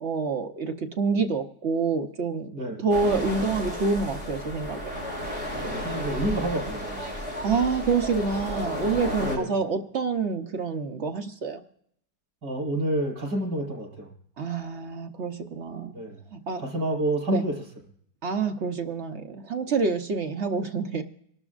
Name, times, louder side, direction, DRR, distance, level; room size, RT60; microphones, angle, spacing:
voice 1, 0.0-2.5 2.8-5.1 7.4-11.6 14.4-15.9 16.3-16.6 17.3-17.4 18.2-21.0, right 4 dB, 50° right, 6 dB, 0.9 m, -27 dB
voice 2, 2.5-2.8 5.6-7.0 9.2-9.5 12.4-14.1 15.9-16.2 16.6-17.5, right 1 dB, 85° right, -3 dB, 5.3 m, -29 dB
sound 1, 2.9-9.4, equal, 20° left, 3.8 m, -33 dB
25.5 x 12.0 x 2.4 m, 0.69 s
omnidirectional pair, 1.8 m